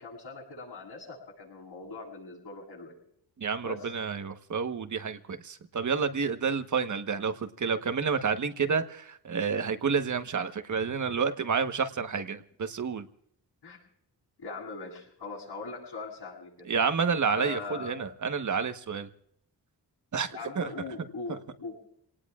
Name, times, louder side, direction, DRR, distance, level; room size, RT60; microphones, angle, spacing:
voice 1, 0.0-3.0 3.6-3.9 13.6-13.8 14.4-16.7 17.3-18.1 20.3-21.8, left 4 dB, 75° left, -8 dB, 7.8 m, -41 dB
voice 2, 3.4-13.1 16.7-19.1 20.1-20.7, right 5 dB, 45° right, 9 dB, 1.3 m, -29 dB
27.5 x 19.0 x 2.5 m, 0.69 s
cardioid pair, 95°, 41 cm